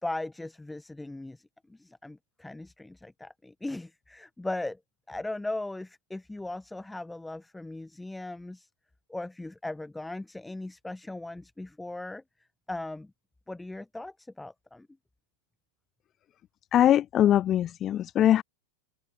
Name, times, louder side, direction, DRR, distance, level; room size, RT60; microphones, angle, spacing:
voice 1, 0.0-4.8 5.1-8.7 9.1-12.2 12.7-13.1 13.5-14.9, left 2 dB, 5° left, 0.9 m, -38 dB
voice 2, 16.7-18.4, left 11 dB, 30° left, 0.3 m, -22 dB
figure-of-eight pair, 90°, 0 cm